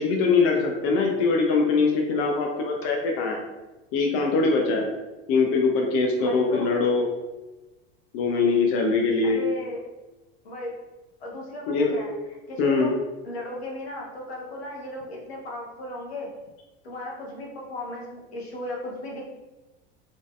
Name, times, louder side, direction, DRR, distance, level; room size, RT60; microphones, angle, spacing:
voice 1, 0.0-3.4 3.9-4.9 5.3-7.1 8.1-9.4 11.7-11.9 12.6-12.9, left 4 dB, 45° left, 1 dB, 0.6 m, -22 dB
voice 2, 6.2-6.7 9.2-9.8 10.4-10.7 11.2-12.1 12.5-13.0 13.2-16.3 16.8-19.3, left 1 dB, 75° left, -2 dB, 1.2 m, -35 dB
3.5 x 3.5 x 2.4 m, 1.1 s
figure-of-eight pair, 80°, 31 cm